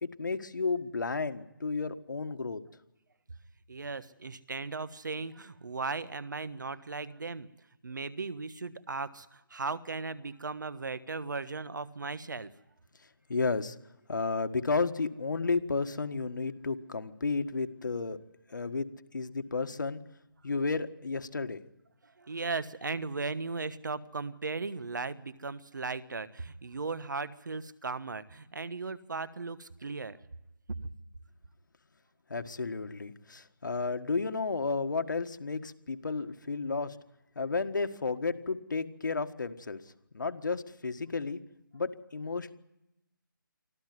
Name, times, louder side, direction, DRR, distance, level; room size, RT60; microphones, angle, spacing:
voice 1, 0.0-2.6 13.3-13.7 14.1-18.2 18.5-18.9 19.1-20.0 20.4-21.6 32.3-36.9 37.3-39.8 40.1-41.4 41.7-42.5, left 4 dB, 60° left, 8 dB, 1.6 m, -32 dB
voice 2, 3.7-7.5 7.8-12.5 22.0-30.2 30.7-30.8, right 4 dB, 60° right, 16 dB, 1.3 m, -37 dB
24.5 x 14.5 x 9.4 m, 0.90 s
hypercardioid pair, 180°, 11 cm